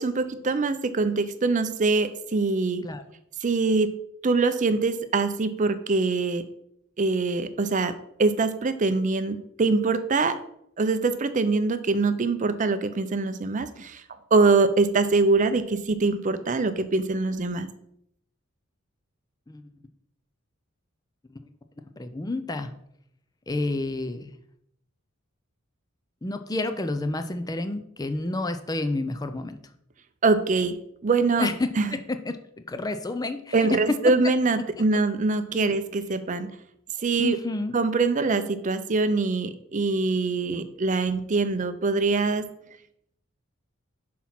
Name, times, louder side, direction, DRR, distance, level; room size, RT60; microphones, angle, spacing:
voice 1, 0.0-2.9 3.4-3.9 4.2-6.4 7.0-10.4 10.8-14.0 14.3-17.7 30.2-31.5 31.8-31.9 33.5-36.5 37.0-37.4 37.7-42.5, right 3 dB, 40° right, 11 dB, 0.5 m, -24 dB
voice 2, 22.0-22.7 23.5-24.4 26.2-29.6 31.4-32.4 32.7-34.0 35.5-35.8 37.2-37.8, left 2 dB, 20° left, 9 dB, 0.5 m, -29 dB
6.2 x 4.2 x 5.8 m, 0.74 s
head